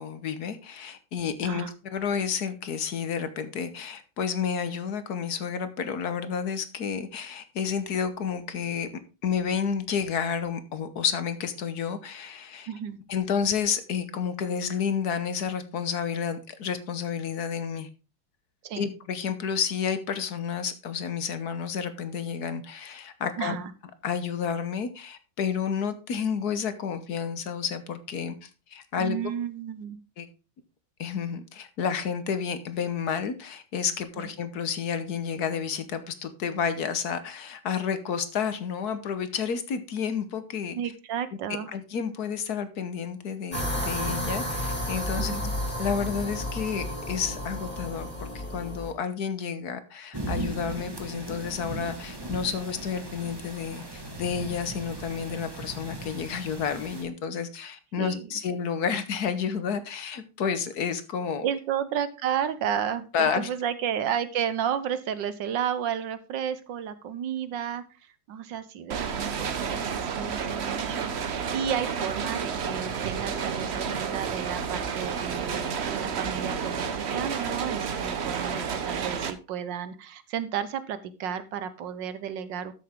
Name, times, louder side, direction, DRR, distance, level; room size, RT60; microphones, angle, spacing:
voice 1, 0.0-8.9 9.2-12.7 13.1-17.9 18.7-23.6 24.0-29.2 30.2-30.3 31.0-40.8 41.7-45.4 45.8-61.4 63.1-63.5, left 7 dB, 55° left, 1.4 m, -30 dB
voice 2, 12.7-13.0 18.6-18.9 23.4-23.7 28.9-30.0 34.2-34.3 40.7-41.7 45.2-45.5 58.0-58.2 61.4-82.7, right 8 dB, 70° right, 1.5 m, -32 dB
sound 1, 43.5-48.9, equal, 15° left, 3.7 m, -32 dB
sound 2, 50.1-57.0, right 2 dB, 15° right, 1.4 m, -38 dB
sound 3, 68.9-79.3, right 6 dB, 50° right, 0.8 m, -31 dB
13.0 x 6.7 x 3.6 m
omnidirectional pair, 2.2 m